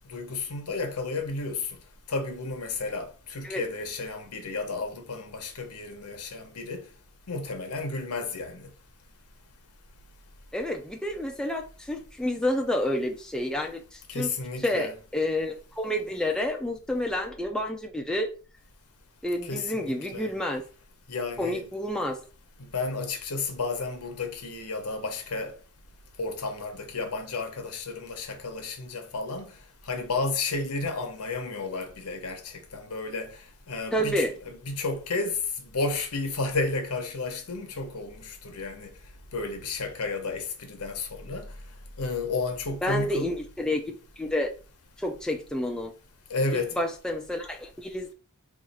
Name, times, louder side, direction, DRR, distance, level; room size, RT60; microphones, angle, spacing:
voice 1, 0.1-1.7 2.1-6.8 7.3-8.7 14.1-14.9 19.4-20.3 21.1-21.7 22.6-25.5 26.2-29.5 29.8-33.3 33.7-34.3 34.7-38.9 39.3-41.5 42.0-43.3 46.3-46.8, left 3 dB, 85° left, 0.8 m, -32 dB
voice 2, 10.5-14.3 14.6-18.3 19.2-20.6 21.4-22.2 33.9-34.3 42.8-44.5 45.0-45.9 46.5-48.1, left 1 dB, 5° left, 0.4 m, -29 dB
3.0 x 2.4 x 4.1 m
head